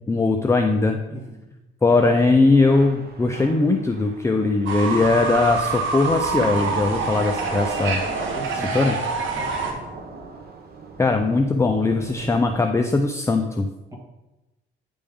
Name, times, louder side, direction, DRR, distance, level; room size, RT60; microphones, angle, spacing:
voice 1, 0.1-1.0 1.8-8.0 8.7-8.9 11.0-13.7, left 3 dB, 15° left, 4 dB, 0.4 m, -20 dB
voice 2, 1.1-1.5 7.0-7.1 8.3-8.7 9.4-9.8 13.9-14.0, equal, 15° right, -1 dB, 1.9 m, -39 dB
Thunder / Rain, 1.9-12.7, right 3 dB, 50° right, 0.9 m, -38 dB
Fowl / Bird, 4.7-9.7, right 4 dB, 75° right, 1.0 m, -26 dB
9.5 x 3.5 x 3.5 m, 1.0 s
cardioid pair, 90°, 20 cm